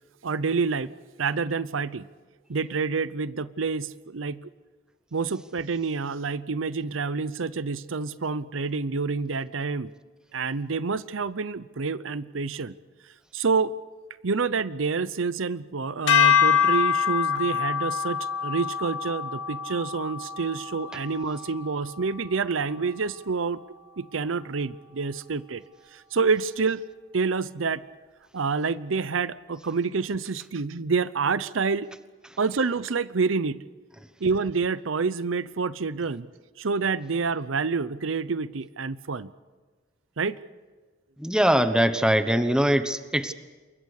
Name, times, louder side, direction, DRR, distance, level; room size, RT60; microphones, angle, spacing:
voice 1, 0.2-0.9 1.2-2.1 2.5-4.4 5.1-9.9 10.3-12.7 13.3-13.7 14.2-23.6 24.0-25.6 25.9-26.8 27.1-27.8 28.3-31.9 32.4-33.6 34.2-36.3 36.6-39.3 40.2-40.4, right 4 dB, 85° right, 16 dB, 0.7 m, -28 dB
sound 1, 16.1-22.4, left 7 dB, 70° left, 2.5 m, -25 dB
voice 2, 41.2-43.3, equal, 5° right, 10 dB, 1.0 m, -22 dB
27.5 x 23.0 x 6.6 m, 1.4 s
head